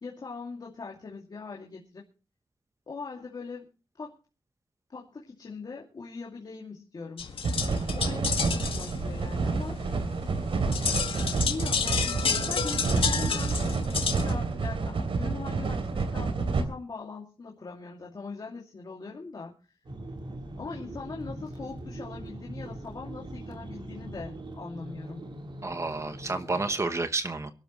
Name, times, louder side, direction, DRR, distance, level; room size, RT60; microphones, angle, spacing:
voice 1, 0.0-2.0 2.9-3.7 4.0-4.2 4.9-7.3 7.9-9.8 11.4-19.5 20.6-25.3, left 4 dB, 50° left, -2 dB, 2.5 m, -41 dB
sound 1, 7.2-14.3, left 6 dB, 85° left, 1.9 m, -31 dB
sound 2, 7.4-16.6, right 4 dB, 80° right, 3.0 m, -29 dB
sound 3, 19.8-26.8, right 1 dB, 60° right, 3.9 m, -41 dB
voice 2, 25.6-27.5, right 3 dB, 30° right, 9 dB, 1.1 m, -30 dB
23.0 x 12.5 x 3.1 m, 0.34 s
wide cardioid pair, 135°, 9 cm